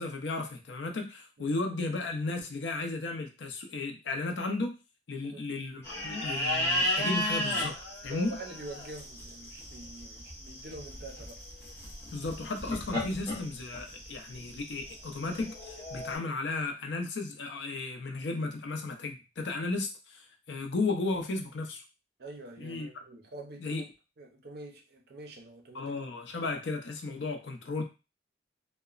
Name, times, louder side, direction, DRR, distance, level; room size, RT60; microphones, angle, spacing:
voice 1, 0.0-4.8 5.1-7.8 8.0-8.4 12.1-21.8 22.6-23.0 23.6-23.8 25.7-27.8, left 3 dB, 65° left, 0.5 m, -34 dB
sound 1, 5.8-16.2, left 1 dB, 15° left, 0.8 m, -35 dB
voice 2, 8.1-11.4 22.2-23.9 24.2-26.0, right 1 dB, 55° right, 0.6 m, -45 dB
2.8 x 2.1 x 2.4 m
head